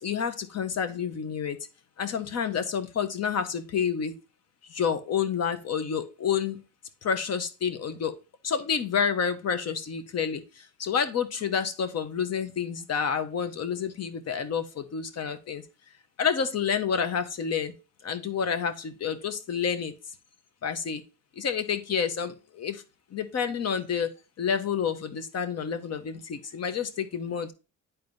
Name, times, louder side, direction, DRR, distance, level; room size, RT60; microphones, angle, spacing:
voice 1, 0.0-1.6 2.0-4.1 4.7-6.6 7.0-8.2 8.4-10.4 10.8-15.6 16.2-17.7 18.0-19.9 20.6-21.0 21.4-22.8 23.1-24.1 24.4-27.5, left 7 dB, 55° left, 10 dB, 1.1 m, -29 dB
10.5 x 4.2 x 2.6 m, 0.31 s
cardioid pair, 90°, 30 cm